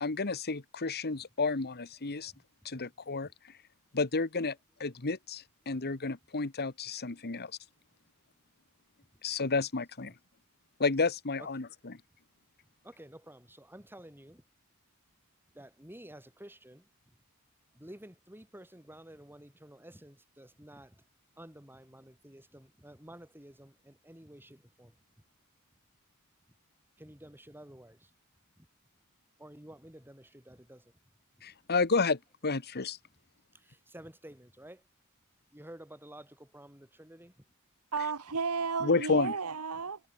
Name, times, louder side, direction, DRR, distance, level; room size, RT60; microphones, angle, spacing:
voice 1, 0.0-2.3 2.6-3.3 3.9-7.5 9.2-10.1 10.8-12.0 31.4-33.0 38.8-39.4, left 4 dB, 45° left, 1.3 m, -31 dB
voice 2, 12.8-14.4 15.5-17.2 17.7-21.1 21.4-25.0 27.0-28.1 28.6-28.7 29.4-31.0 31.4-31.5 33.5-34.8 35.5-37.4 39.8-39.9, right 1 dB, 10° right, 6.1 m, -52 dB
voice 3, 37.9-40.0, right 5 dB, 80° right, 1.3 m, -33 dB
head